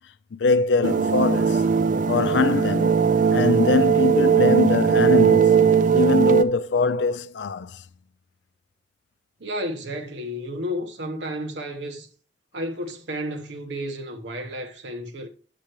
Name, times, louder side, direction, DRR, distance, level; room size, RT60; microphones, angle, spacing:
voice 1, 0.3-1.6 2.1-3.0 3.3-5.5 5.9-7.8, left 4 dB, 85° left, 0.4 m, -22 dB
sound 1, 0.8-6.4, right 6 dB, 50° right, 0.5 m, -19 dB
voice 2, 9.4-12.1 12.5-15.3, equal, 90° right, 1.1 m, -32 dB
8.4 x 6.6 x 2.9 m
head